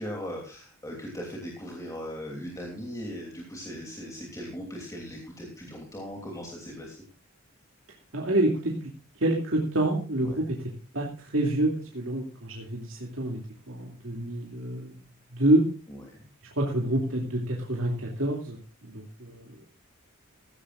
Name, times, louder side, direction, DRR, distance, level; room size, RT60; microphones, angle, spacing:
voice 1, 0.0-7.0 10.2-10.4 15.9-16.3, equal, 15° left, 0 dB, 3.0 m, -39 dB
voice 2, 8.1-8.7 9.2-10.6 10.9-11.1 11.3-13.4 13.7-14.9 15.3-15.7 16.6-18.6 18.8-19.7, right 1 dB, 70° right, -1 dB, 2.6 m, -27 dB
17.0 x 15.5 x 2.5 m, 0.36 s
head